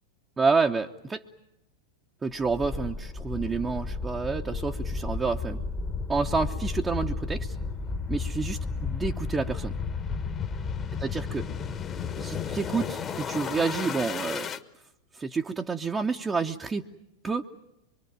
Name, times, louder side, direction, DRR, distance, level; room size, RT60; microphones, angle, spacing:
voice 1, 0.4-1.2 2.2-5.6 6.1-7.6 8.1-9.8 11.0-11.4 12.2-14.5 15.1-16.8 17.2-17.4, right 4 dB, 15° right, 2 dB, 0.9 m, -29 dB
sound 1, 2.4-14.6, left 5 dB, 25° left, 1.2 m, -33 dB
25.0 x 23.5 x 8.9 m, 0.88 s
figure-of-eight pair, 90°, 0 cm